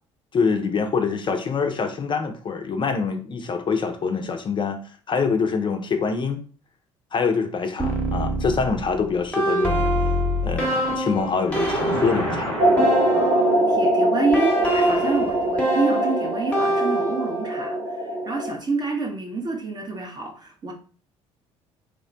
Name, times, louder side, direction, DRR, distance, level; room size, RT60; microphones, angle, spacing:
voice 1, 0.3-6.4 7.1-9.9 10.4-12.6, left 5 dB, 30° left, 0.4 m, -25 dB
sound 1, 7.8-13.7 14.3-17.5, right 1 dB, 5° left, 0.8 m, -25 dB
sound 2, 11.4-13.8, equal, 85° right, 0.8 m, -31 dB
sound 3, 12.6-18.5, right 1 dB, 45° right, 0.9 m, -22 dB
voice 2, 13.1-20.7, right 3 dB, 25° right, 0.5 m, -28 dB
3.0 x 2.0 x 2.5 m
figure-of-eight pair, 50°, 16 cm